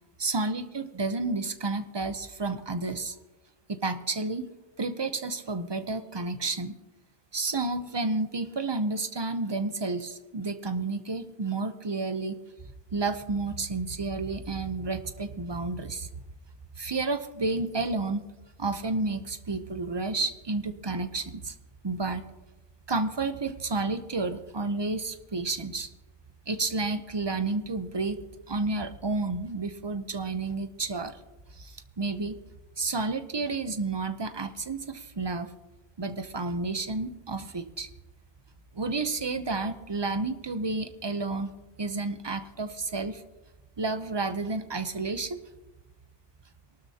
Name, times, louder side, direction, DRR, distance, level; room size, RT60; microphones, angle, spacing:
voice 1, 0.2-3.2 3.7-4.5 4.8-6.8 7.3-12.4 12.9-16.1 16.8-18.2 18.6-21.5 21.8-22.3 22.9-25.9 26.5-28.2 28.5-31.2 31.5-32.4 32.8-35.5 36.0-37.9 38.7-41.5 41.8-43.2 43.8-45.4, right 3 dB, 30° right, 9 dB, 0.5 m, -31 dB
23.0 x 12.5 x 2.8 m, 1.1 s
omnidirectional pair, 1.2 m